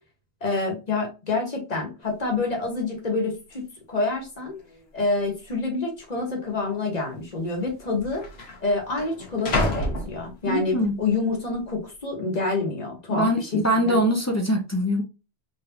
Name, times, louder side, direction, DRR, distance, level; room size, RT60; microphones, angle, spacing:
voice 1, 0.4-4.5 4.9-8.2 8.6-14.0, left 3 dB, 40° left, 0 dB, 1.4 m, -27 dB
sound 1, 2.1-2.2 2.4-2.8 3.5-3.6 4.4-4.9 5.1-5.3 6.1-6.3 7.3-7.4 7.6-10.8 11.3-11.7, left 1 dB, 70° left, 1.3 m, -31 dB
voice 2, 10.5-11.0 13.1-15.0, equal, 20° left, 1 dB, 0.6 m, -23 dB
3.9 x 3.2 x 2.8 m, 0.31 s
omnidirectional pair, 1.1 m